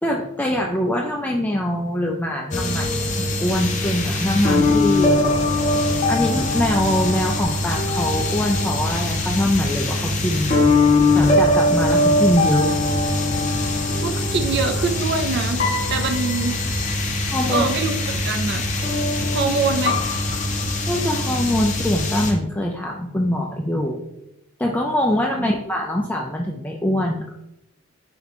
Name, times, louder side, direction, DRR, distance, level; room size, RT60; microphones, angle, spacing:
voice 1, 0.0-5.2 6.1-10.6 11.1-12.7 17.3-17.6 20.9-24.0 24.6-27.3, left 1 dB, 10° left, 0 dB, 0.3 m, -23 dB
sound 1, 2.5-22.3, left 2 dB, 35° left, 0.8 m, -21 dB
voice 2, 13.8-16.6 17.5-18.7 19.3-20.0 25.4-25.6, right 4 dB, 55° right, 7 dB, 0.4 m, -24 dB
4.4 x 2.8 x 4.0 m, 0.81 s
head